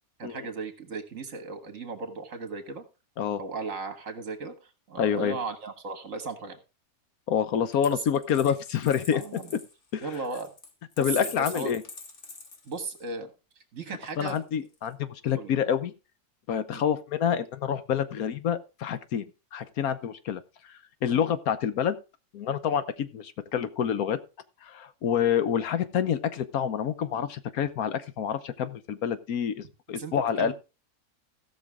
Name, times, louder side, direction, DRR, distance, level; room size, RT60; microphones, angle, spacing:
voice 1, 0.2-2.8 3.4-6.6 7.9-8.0 9.1-9.5 10.0-10.5 11.0-11.8 12.7-13.3 13.7-14.4 15.3-15.5 16.7-16.8 30.0-30.5, right 3 dB, 60° right, 8 dB, 2.0 m, -36 dB
voice 2, 5.0-5.4 7.3-9.2 9.9-10.0 11.0-11.8 14.2-15.9 16.5-19.2 19.5-20.4 20.7-22.0 22.3-24.2 24.6-30.5, left 8 dB, 75° left, 13 dB, 1.3 m, -27 dB
Coin (dropping), 7.7-13.1 14.2-14.9, left 4 dB, 50° left, 1.7 m, -45 dB
16.5 x 6.3 x 3.6 m, 0.30 s
omnidirectional pair, 1.6 m